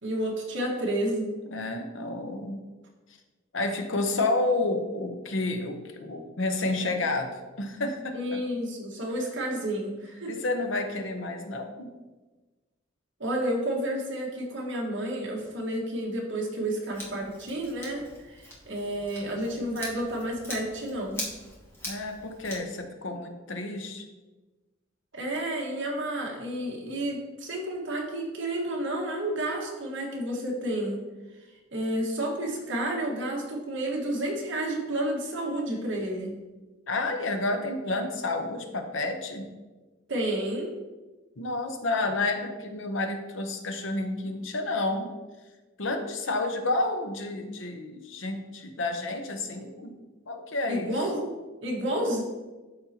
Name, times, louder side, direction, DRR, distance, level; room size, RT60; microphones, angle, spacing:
voice 1, 0.0-1.4 8.1-10.3 13.2-21.2 25.1-31.0 31.7-36.3 40.1-40.7 50.7-51.3 51.6-52.2, right 1 dB, 65° right, -1 dB, 1.6 m, -30 dB
voice 2, 1.5-2.6 3.5-8.4 10.3-11.9 21.8-24.0 36.9-39.5 41.4-45.1 45.8-49.9 50.3-50.9, left 2 dB, 65° left, 5 dB, 0.9 m, -30 dB
Scissors, 16.9-22.6, left 1 dB, 10° left, 1.4 m, -42 dB
12.5 x 4.3 x 2.9 m, 1.2 s
head